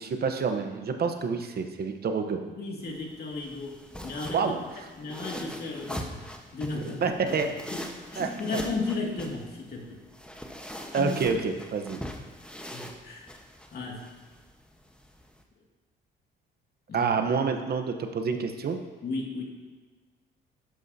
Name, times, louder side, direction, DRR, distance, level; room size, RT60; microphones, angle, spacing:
voice 1, 0.0-2.4 4.3-4.6 6.7-7.5 8.2-8.6 10.9-12.0 16.9-18.8, right 5 dB, 50° right, 6 dB, 0.9 m, -28 dB
voice 2, 2.5-4.5 5.0-7.4 7.7-10.0 10.9-11.2 12.6-13.3 13.7-14.0 16.9-17.1 19.0-19.4, left 3 dB, 55° left, -1 dB, 2.2 m, -35 dB
sound 1, 2.8-15.4, equal, 5° left, 1.1 m, -42 dB
11.5 x 9.9 x 2.8 m, 1.3 s
cardioid pair, 90°, 20 cm